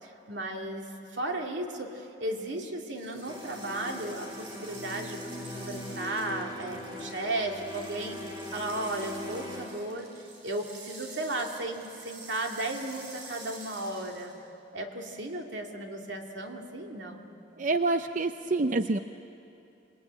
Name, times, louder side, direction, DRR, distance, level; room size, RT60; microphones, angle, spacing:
voice 1, 0.0-10.1 10.4-14.4 14.7-17.3, right 1 dB, 85° right, 2 dB, 2.5 m, -35 dB
sound 1, 2.9-14.5, right 3 dB, 60° right, 4.2 m, -49 dB
sound 2, 3.2-9.7, left 1 dB, 25° right, 4.0 m, -41 dB
voice 2, 17.6-19.0, right 3 dB, 45° right, 9 dB, 0.5 m, -27 dB
26.5 x 20.5 x 8.9 m, 2.8 s
head